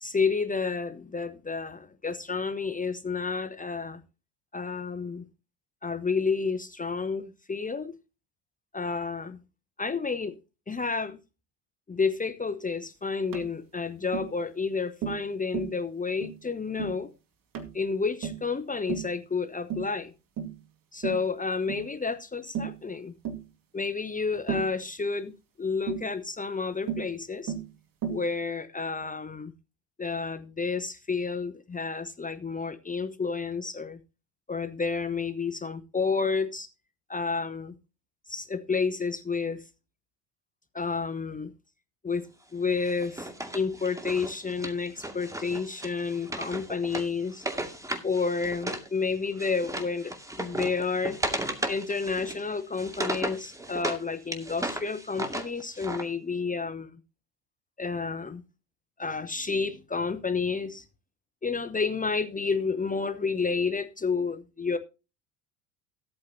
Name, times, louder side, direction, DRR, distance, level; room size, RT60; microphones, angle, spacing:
voice 1, 0.0-4.0 4.5-5.2 5.8-8.0 8.7-9.4 9.8-10.4 10.7-11.2 11.9-17.1 17.7-20.1 20.9-23.1 23.7-25.3 25.6-27.5 28.1-29.5 30.0-34.0 34.5-36.7 37.1-37.7 38.3-39.6 40.7-41.5 42.0-47.4 48.0-51.2 51.7-56.9 57.8-58.4 59.0-60.8 61.4-64.8, left 4 dB, 15° left, 1.0 m, -30 dB
Tap, 13.3-13.5 14.1-14.3 15.0-15.3 15.5-15.8 16.2-16.4 16.8-17.0 17.5-17.8 18.2-18.5 18.9-19.1 19.7-19.9 20.4-20.6 21.0-21.3 21.7-21.9 22.5-22.8 23.2-23.4 24.5-24.8 25.9-26.1 26.9-27.1 27.5-27.7 28.0-28.3, right 8 dB, 45° right, 2.3 m, -34 dB
Wood, 42.8-48.9 49.2-54.0 54.3-56.0, right 1 dB, 5° right, 2.3 m, -35 dB
15.5 x 8.8 x 2.8 m
hypercardioid pair, 70°, 48 cm